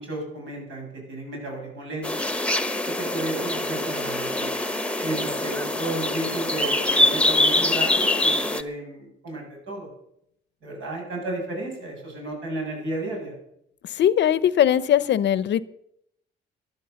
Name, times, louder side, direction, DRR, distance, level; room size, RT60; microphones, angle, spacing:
voice 1, 0.0-2.2 2.9-4.5 5.0-9.9 10.6-13.3, right 1 dB, 75° right, 0 dB, 7.4 m, -33 dB
sound 1, 2.0-8.6, left 2 dB, 5° left, 1.0 m, -24 dB
voice 2, 14.0-15.6, left 10 dB, 65° left, 18 dB, 0.7 m, -20 dB
14.0 x 11.0 x 6.8 m, 0.77 s
cardioid pair, 90°, 20 cm